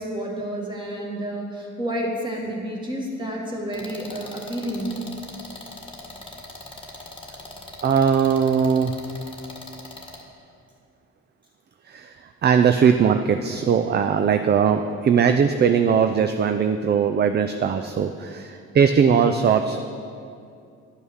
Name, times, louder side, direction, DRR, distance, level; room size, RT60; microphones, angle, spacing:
voice 1, 0.0-5.0, right 1 dB, 15° right, -2 dB, 2.1 m, -30 dB
sound 1, 3.7-10.2, left 2 dB, 15° left, 1.5 m, -41 dB
voice 2, 7.8-8.9 11.9-12.1 12.4-19.8, right 7 dB, 35° right, 8 dB, 0.4 m, -20 dB
11.5 x 5.3 x 6.3 m, 2.4 s
cardioid pair, 90°, 30 cm